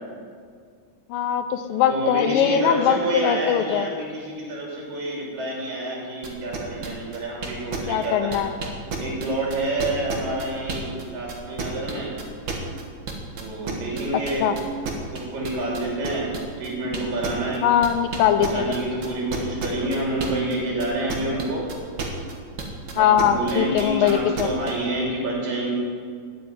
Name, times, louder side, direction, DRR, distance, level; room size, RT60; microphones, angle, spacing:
voice 1, 1.1-3.9 7.9-8.5 14.4-14.5 17.6-18.8 23.0-24.5, left 9 dB, 80° left, 9 dB, 2.4 m, -21 dB
voice 2, 1.9-8.4 9.0-12.1 13.4-14.5 15.1-17.6 18.3-21.6 22.9-25.7, right 1 dB, 70° right, -4 dB, 4.9 m, -28 dB
sound 1, 6.2-11.0 11.3-20.5 20.8-24.7, right 5 dB, 50° right, 1.6 m, -31 dB
9.8 x 8.7 x 9.5 m, 2.1 s
omnidirectional pair, 4.1 m